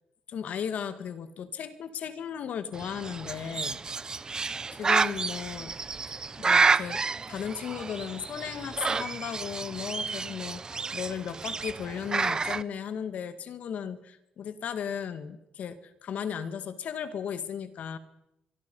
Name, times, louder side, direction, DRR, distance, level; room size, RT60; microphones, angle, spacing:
voice 1, 0.3-3.8 4.7-5.7 6.4-7.0 7.3-18.0, left 8 dB, 60° left, 11 dB, 2.0 m, -36 dB
Bird, 2.7-12.6, right 4 dB, 25° right, 0.7 m, -30 dB
24.0 x 23.0 x 5.6 m, 0.87 s
cardioid pair, 120°, 3 cm